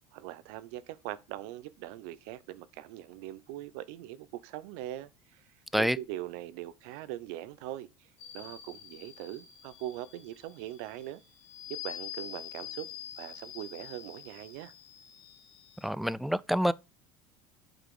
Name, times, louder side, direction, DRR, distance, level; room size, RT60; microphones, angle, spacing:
voice 1, 0.1-5.5 5.8-8.1 8.3-11.2 11.7-12.9 13.2-14.7, right 14 dB, 75° right, 0.7 m, -41 dB
sound 1, 8.2-15.9, left 11 dB, 90° left, 2.7 m, -46 dB
voice 2, 15.8-16.7, equal, ahead, 0.3 m, -27 dB
8.0 x 4.0 x 4.9 m
supercardioid pair, 120°, 9 cm